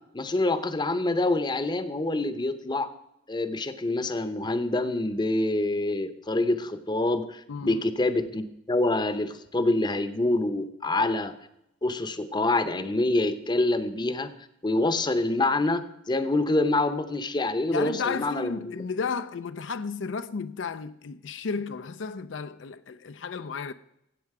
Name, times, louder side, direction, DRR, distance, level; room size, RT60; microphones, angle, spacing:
voice 1, 0.1-2.9 3.3-11.3 11.8-14.3 14.6-18.6, left 2 dB, 25° left, 0.7 m, -26 dB
voice 2, 7.5-7.8 17.7-23.7, left 5 dB, 75° left, 0.5 m, -33 dB
14.0 x 8.2 x 4.8 m
head